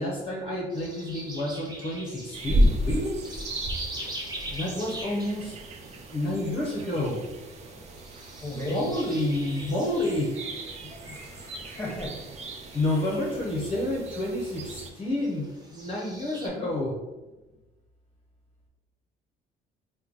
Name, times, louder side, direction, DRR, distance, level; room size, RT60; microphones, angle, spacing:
voice 1, 0.0-3.2 4.5-5.6 6.1-7.3 8.7-10.4 11.0-11.2 12.7-17.0, left 1 dB, 30° left, -3 dB, 0.7 m, -29 dB
sound 1, 0.7-16.5, right 1 dB, 25° right, 0.9 m, -44 dB
sound 2, 2.3-14.9, equal, 40° right, 0.5 m, -33 dB
voice 2, 8.4-8.9 11.0-12.1, equal, 15° left, -1 dB, 1.0 m, -35 dB
3.1 x 2.1 x 3.8 m, 1.1 s
cardioid pair, 110°, 17 cm